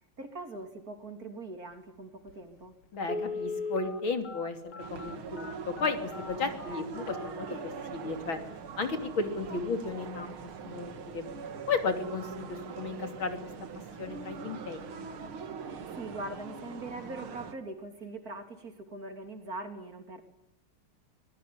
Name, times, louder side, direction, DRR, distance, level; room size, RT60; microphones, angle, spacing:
voice 1, 0.2-2.7 6.7-7.1 9.5-10.0 15.6-20.2, right 2 dB, 45° right, 7 dB, 3.7 m, -42 dB
Telephone, 2.3-2.4 3.0-7.9 8.4-8.5 8.9-9.1 9.4-9.7 10.0-10.1, left 3 dB, 85° left, 3.2 m, -39 dB
voice 2, 2.9-8.4 8.8-10.4 10.6-11.3 11.7-13.4 14.0-15.1, left 4 dB, 70° left, 7 dB, 3.7 m, -34 dB
sound 1, 4.8-17.6, right 6 dB, 80° right, 2.6 m, -42 dB
23.5 x 21.0 x 9.7 m, 0.76 s
omnidirectional pair, 2.3 m